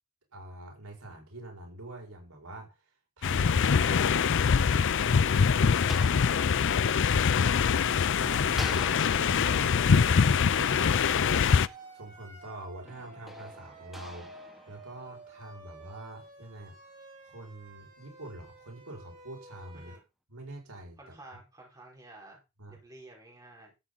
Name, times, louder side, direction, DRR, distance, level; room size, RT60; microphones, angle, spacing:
voice 1, 0.3-2.9 3.2-4.3 5.3-5.9 7.8-11.6 11.9-16.8 17.2-19.9 20.3-21.4 22.6-22.8, right 2 dB, 80° right, 5.5 m, -45 dB
sound 1, 3.2-11.7, left 6 dB, 55° left, 0.5 m, -24 dB
sound 2, 5.6-8.1 8.5-12.3 12.9-15.5, equal, ahead, 2.3 m, -48 dB
Siren, 7.6-20.0, right 2 dB, 35° right, 5.5 m, -51 dB
voice 2, 21.0-22.4 22.7-23.7, right 2 dB, 15° right, 5.0 m, -51 dB
13.5 x 8.6 x 4.0 m
head